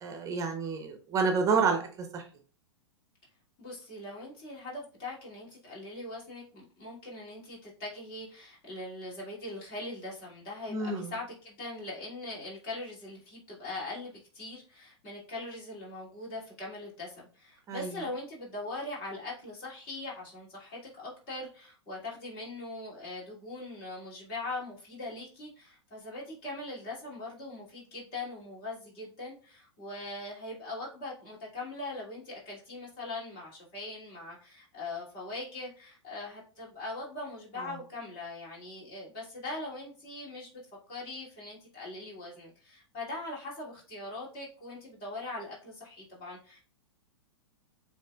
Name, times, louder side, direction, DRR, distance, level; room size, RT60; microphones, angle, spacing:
voice 1, 0.0-2.2 10.7-11.1 17.7-18.0 37.6-37.7, right 4 dB, 20° right, 5 dB, 0.8 m, -29 dB
voice 2, 3.6-40.5 40.9-46.6, left 2 dB, 40° left, -5 dB, 2.6 m, -41 dB
7.5 x 2.9 x 2.3 m, 0.40 s
figure-of-eight pair, 100°, 15 cm